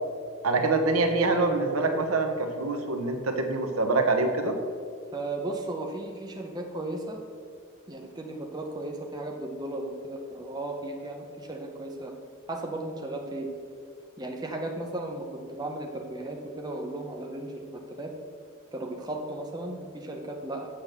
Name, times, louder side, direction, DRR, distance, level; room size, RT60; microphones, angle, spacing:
voice 1, 0.4-4.6, right 3 dB, 85° right, 5 dB, 1.1 m, -25 dB
voice 2, 5.1-7.2 7.9-12.2 12.5-13.6 14.2-18.1 18.7-20.7, right 2 dB, 20° right, 1 dB, 0.9 m, -35 dB
7.5 x 7.3 x 6.7 m, 2.1 s
head